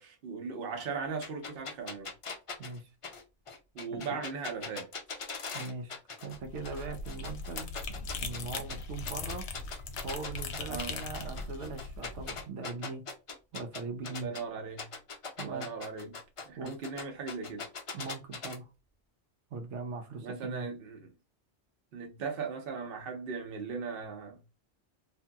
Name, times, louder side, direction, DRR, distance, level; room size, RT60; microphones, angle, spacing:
voice 1, 0.0-2.1 3.7-4.9 10.7-10.9 14.1-14.9 15.4-16.2 16.5-17.6 20.2-21.0 21.9-24.4, right 5 dB, 60° right, 0.9 m, -38 dB
sound 1, 1.2-6.4 6.6-8.8 9.0-14.4 14.8-18.6, left 4 dB, 50° left, 0.4 m, -41 dB
voice 2, 2.6-2.9 3.9-4.2 5.5-7.9 8.2-9.5 10.0-13.0 13.5-14.3 15.4-15.7 16.6-16.7 17.9-18.7 19.5-20.7, right 4 dB, 90° right, 1.0 m, -40 dB
sound 2, 6.3-12.4, left 4 dB, 75° left, 0.8 m, -40 dB
2.7 x 2.6 x 2.3 m
omnidirectional pair, 1.2 m